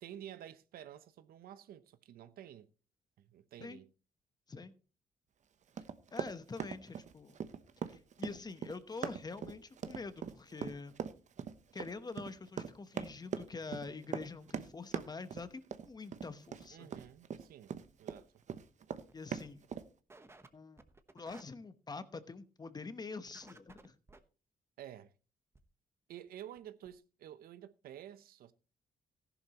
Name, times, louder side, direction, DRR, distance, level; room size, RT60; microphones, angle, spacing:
voice 1, 0.0-2.7 3.2-3.9 16.7-17.7 18.0-18.4 24.8-25.1 26.1-28.5, right 11 dB, 85° right, 0.8 m, -51 dB
Run, 5.8-18.2 18.5-19.9, right 7 dB, 55° right, 0.9 m, -41 dB
voice 2, 6.1-7.4 7.9-11.0 11.7-16.9 19.1-19.7 20.5-20.8 21.1-23.9, left 4 dB, 25° left, 1.0 m, -46 dB
sound 1, 18.3-18.6 19.0-19.1 19.4-19.5 20.1-20.5 20.8-21.4 23.3-24.2 25.5-25.6 26.3-26.4 26.6-26.7 26.8-27.0, right 2 dB, 15° right, 1.0 m, -57 dB
14.5 x 11.0 x 3.0 m
cardioid pair, 105°, 15 cm